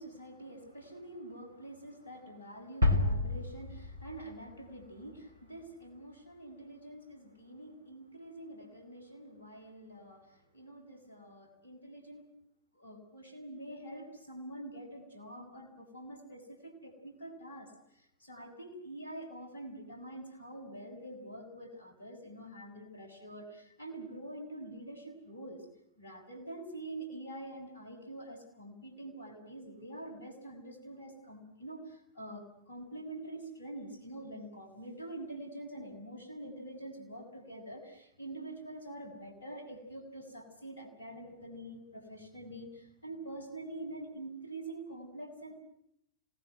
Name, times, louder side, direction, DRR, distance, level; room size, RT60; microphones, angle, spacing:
voice 1, 0.0-12.3 12.7-25.7 26.0-45.6, right 1 dB, 75° left, 4 dB, 7.0 m, -46 dB
sound 1, 2.8-4.9, left 2 dB, 75° right, 2.9 m, -30 dB
27.5 x 19.5 x 7.9 m, 0.72 s
figure-of-eight pair, 90°, 0 cm